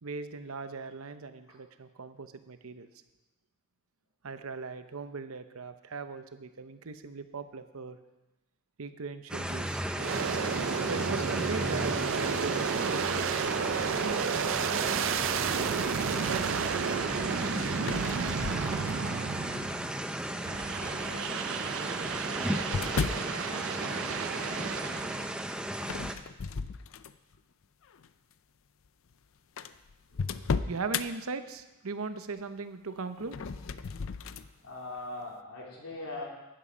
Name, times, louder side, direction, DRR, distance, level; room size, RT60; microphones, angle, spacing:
voice 1, 0.0-2.9 4.2-8.0 8.8-9.8 10.9-15.7 16.2-17.0 18.2-18.3 30.3-33.3, right 4 dB, 75° right, 10 dB, 0.8 m, -39 dB
sound 1, 9.3-26.1, right 1 dB, 5° right, 0.5 m, -35 dB
Aircraft, 9.9-20.0 20.4-25.4, right 7 dB, 60° right, 0.4 m, -32 dB
sound 2, 17.8-19.2 19.9-20.3 21.4-23.3 25.8-27.4 27.8-28.1 28.8-28.9 29.1-29.2 29.6-31.1 33.2-34.5, left 5 dB, 65° left, 0.5 m, -35 dB
voice 2, 34.6-36.2, left 2 dB, 85° left, -3 dB, 3.6 m, -40 dB
11.5 x 10.5 x 5.1 m, 1.0 s
head